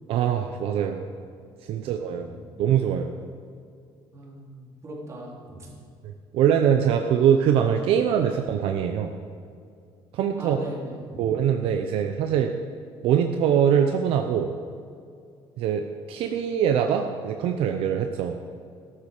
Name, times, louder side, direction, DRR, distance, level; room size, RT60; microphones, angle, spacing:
voice 1, 0.1-1.0 1.7-2.3 2.6-3.1 6.3-9.1 10.1-10.6 11.2-12.5 13.0-14.6 15.6-18.4, right 8 dB, 70° right, 5 dB, 0.8 m, -23 dB
voice 2, 4.1-5.7 10.4-11.2, right 1 dB, 30° right, -3 dB, 3.4 m, -39 dB
13.5 x 12.5 x 5.0 m, 2.4 s
cardioid pair, 140°, 10 cm